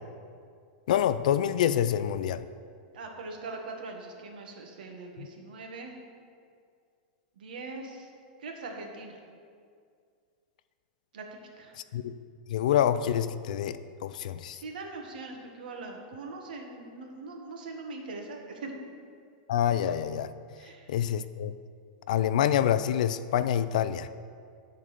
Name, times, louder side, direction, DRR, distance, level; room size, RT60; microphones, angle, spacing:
voice 1, 0.9-2.4 5.2-5.3 11.9-12.1 12.5-14.6 19.5-20.3 20.9-21.6 22.1-24.1, left 10 dB, 60° left, 13 dB, 0.4 m, -26 dB
voice 2, 2.9-6.0 7.4-8.1 8.4-9.2 11.1-11.2 11.6-11.7 14.5-18.7 20.6-20.9, right 3 dB, 80° right, 2 dB, 1.5 m, -41 dB
10.5 x 3.9 x 6.7 m, 2.2 s
supercardioid pair, 180°, 5 cm